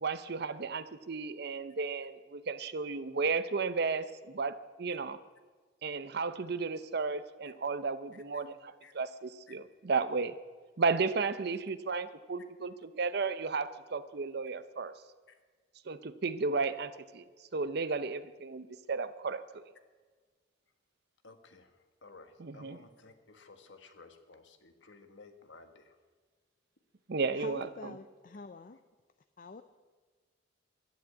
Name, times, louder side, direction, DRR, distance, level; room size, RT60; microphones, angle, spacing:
voice 1, 0.0-5.2 5.8-10.3 10.8-14.9 15.9-17.2 17.5-19.6 22.4-22.8 27.1-27.9, right 4 dB, 60° right, 14 dB, 0.7 m, -34 dB
voice 2, 8.1-8.4 8.8-8.9 9.5-9.6 21.2-21.7 22.0-26.0, left 3 dB, 75° left, 8 dB, 1.4 m, -55 dB
voice 3, 27.3-28.8 29.4-29.6, left 4 dB, 45° left, 10 dB, 0.5 m, -46 dB
11.5 x 10.5 x 8.2 m, 1.4 s
head